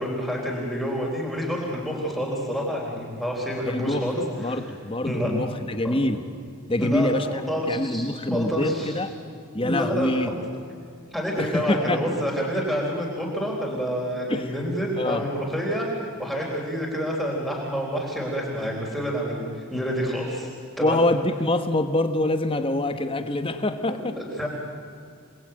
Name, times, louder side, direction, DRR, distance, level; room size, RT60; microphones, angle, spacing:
voice 1, 0.0-4.6 5.0-5.3 5.8-6.0 6.8-9.0 9.6-10.4 11.1-20.5 20.8-21.0 23.9-24.5, equal, ahead, -2 dB, 3.9 m, -28 dB
voice 2, 3.6-4.1 4.4-6.2 6.7-7.3 7.7-9.1 9.5-10.3 11.4-12.0 14.3-14.6 15.0-15.2 20.8-24.2, left 1 dB, 25° left, 8 dB, 1.4 m, -25 dB
27.5 x 20.0 x 8.9 m, 2.4 s
head